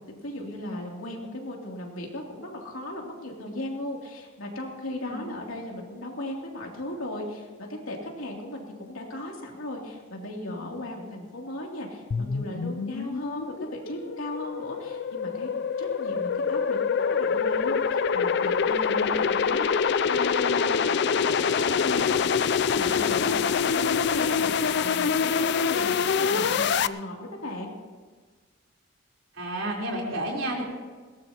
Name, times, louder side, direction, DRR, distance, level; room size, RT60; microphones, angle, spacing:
voice 1, 0.1-15.5 15.8-27.8, left 1 dB, 75° left, 0 dB, 2.9 m, -36 dB
sound 1, 12.1-26.9, left 6 dB, 50° left, 0.4 m, -25 dB
voice 2, 29.3-30.6, right 1 dB, 70° right, -2 dB, 3.9 m, -30 dB
21.0 x 18.0 x 2.9 m, 1.4 s
head